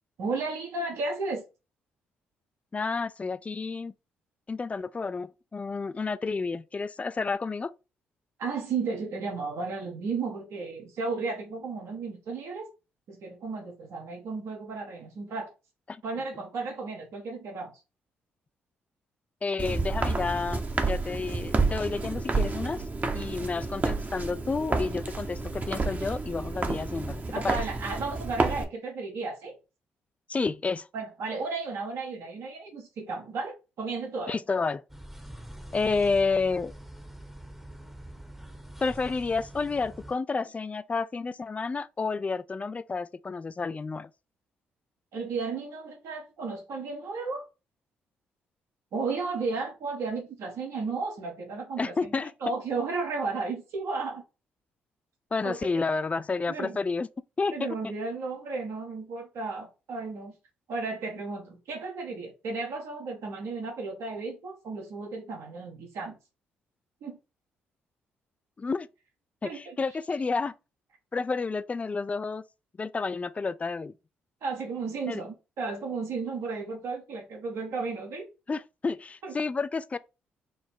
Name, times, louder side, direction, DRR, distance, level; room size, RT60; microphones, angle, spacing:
voice 1, 0.2-1.4 8.4-12.7 13.1-15.5 16.0-17.7 27.3-29.6 30.9-34.4 45.1-47.4 48.9-51.9 52.4-54.2 55.4-55.8 56.5-56.8 57.5-60.4 60.7-66.2 67.0-67.2 69.4-69.8 74.4-78.3 79.2-79.4, right 4 dB, 70° right, 1.1 m, -34 dB
voice 2, 2.7-3.9 4.5-7.7 15.9-16.0 19.4-22.8 23.1-27.6 30.3-30.9 34.3-34.8 35.7-36.7 38.8-44.1 51.8-52.3 55.3-57.1 57.4-57.7 68.6-68.9 69.4-70.5 71.1-72.4 72.8-73.9 75.1-75.2 78.5-80.0, left 4 dB, 25° left, 0.3 m, -30 dB
Walk footsteps, 19.6-28.6, right 3 dB, 35° right, 0.8 m, -30 dB
sound 1, 34.9-40.1, right 1 dB, 5° right, 0.9 m, -44 dB
3.9 x 2.0 x 4.3 m
hypercardioid pair, 50°, 5 cm